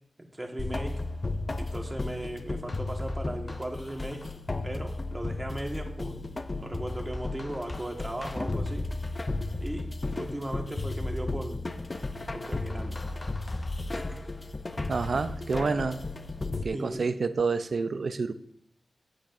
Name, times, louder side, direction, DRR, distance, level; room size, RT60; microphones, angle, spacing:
voice 1, 0.2-1.0 1.6-4.3 4.6-6.3 6.6-8.8 9.6-9.9 10.1-11.7 12.3-13.0 13.9-14.3 16.7-17.1, right 1 dB, 20° right, 2 dB, 1.6 m, -37 dB
sound 1, 0.6-16.6, left 2 dB, 35° left, 0.6 m, -34 dB
voice 2, 14.9-16.0 16.6-18.3, right 4 dB, 65° right, 12 dB, 0.5 m, -28 dB
15.5 x 8.7 x 2.6 m, 0.74 s
cardioid pair, 65°, 0 cm